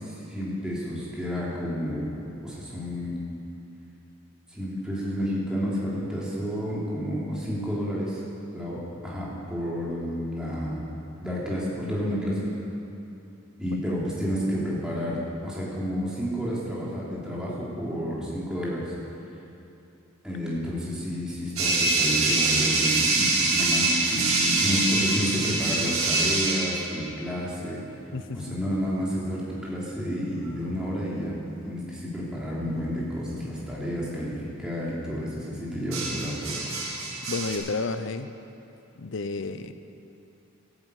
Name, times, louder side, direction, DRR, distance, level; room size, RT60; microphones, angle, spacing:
voice 1, 0.0-2.1 2.4-3.2 4.5-8.2 8.5-10.8 11.2-12.5 13.6-18.9 20.2-27.8 28.3-31.4 31.6-36.6, equal, 5° right, -7 dB, 2.9 m, -30 dB
sound 1, 21.6-26.9 30.4-30.7 35.9-37.6, right 3 dB, 80° right, 2.4 m, -25 dB
voice 2, 28.1-28.6 37.3-38.3 39.0-39.8, left 3 dB, 60° left, 11 dB, 0.6 m, -31 dB
13.5 x 9.0 x 8.2 m, 2.8 s
head